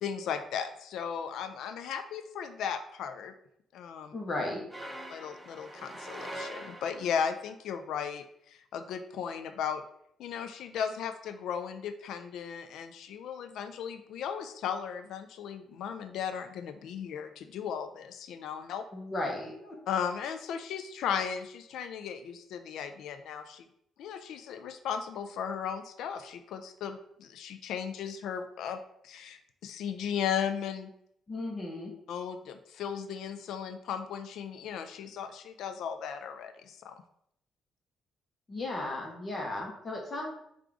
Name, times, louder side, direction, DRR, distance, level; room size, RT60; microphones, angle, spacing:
voice 1, 0.0-3.4 3.7-4.1 5.1-9.8 10.2-18.8 19.9-23.6 24.0-30.9 32.1-37.0, left 7 dB, 80° left, 9 dB, 0.3 m, -36 dB
voice 2, 4.1-4.6 18.9-19.8 31.3-31.9 38.5-40.3, left 2 dB, 35° left, 0 dB, 0.9 m, -35 dB
sound 1, 4.7-7.3, right 1 dB, 10° right, 0.7 m, -43 dB
3.6 x 2.4 x 4.6 m, 0.73 s
cardioid pair, 90°, 0 cm